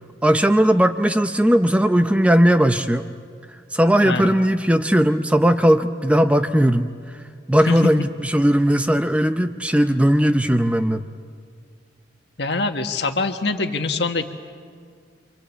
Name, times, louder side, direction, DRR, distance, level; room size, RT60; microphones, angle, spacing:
voice 1, 0.2-3.1 3.7-6.9 7.5-11.1, equal, 5° right, 8 dB, 0.7 m, -18 dB
voice 2, 4.0-4.3 7.7-7.8 12.4-14.3, left 3 dB, 65° left, 6 dB, 1.6 m, -24 dB
28.0 x 25.0 x 8.5 m, 2.1 s
head